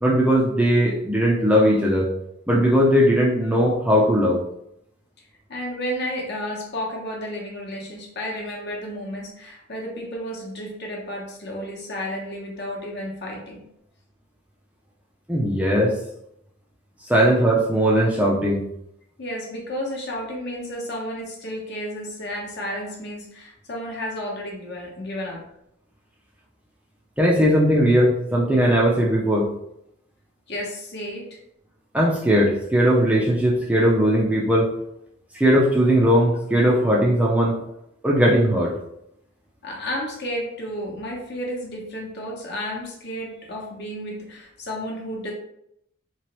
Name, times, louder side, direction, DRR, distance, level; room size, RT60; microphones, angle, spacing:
voice 1, 0.0-2.1 2.5-4.4 15.3-16.0 17.0-18.7 27.2-29.5 31.9-34.8 35.3-37.6 38.0-38.8, equal, 5° right, -4 dB, 0.4 m, -19 dB
voice 2, 5.5-13.6 19.2-25.4 30.5-31.4 39.6-45.3, equal, 50° left, -1 dB, 0.9 m, -32 dB
3.1 x 2.9 x 2.9 m, 0.76 s
head